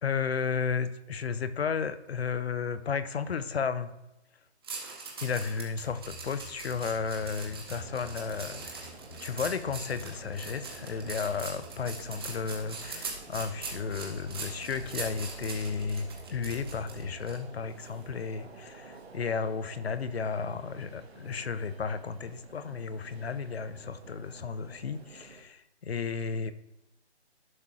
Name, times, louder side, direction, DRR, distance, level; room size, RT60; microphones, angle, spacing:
voice 1, 0.0-3.9 5.2-8.8 9.2-26.5, left 5 dB, 65° left, 12 dB, 0.6 m, -33 dB
sound 1, 4.6-17.4 17.8-18.0, right 4 dB, 20° right, 1.0 m, -42 dB
sound 2, 5.8-17.3, left 1 dB, 90° left, 1.0 m, -50 dB
sound 3, 7.8-25.4, right 3 dB, 65° right, 1.3 m, -51 dB
11.0 x 5.8 x 2.4 m, 0.93 s
hypercardioid pair, 165°, 34 cm